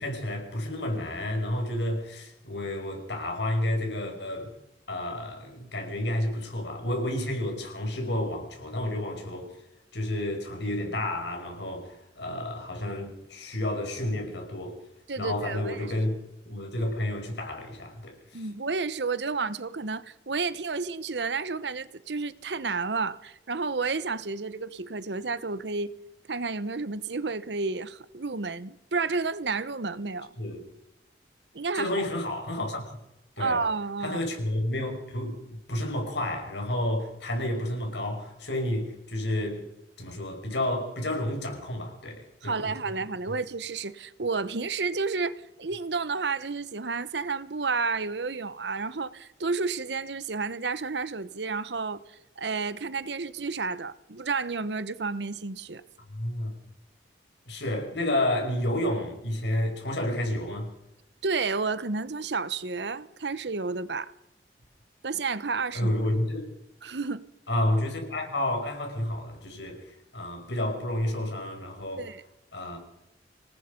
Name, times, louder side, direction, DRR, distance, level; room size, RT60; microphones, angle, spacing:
voice 1, 0.0-4.5 4.9-9.5 9.9-14.8 15.2-16.2 16.5-18.5 30.4-30.6 31.7-33.0 33.4-33.6 34.0-39.7 40.0-42.7 56.1-56.5 57.5-60.7 65.7-66.5 67.5-72.1 72.5-72.8, left 1 dB, 80° left, 5.6 m, -30 dB
voice 2, 15.1-15.9 18.3-25.9 26.3-30.3 31.5-32.1 33.4-34.2 42.4-55.8 61.2-64.1 65.0-65.9 66.8-67.2 72.0-72.2, right 4 dB, 75° right, 1.0 m, -31 dB
26.5 x 19.0 x 5.3 m
head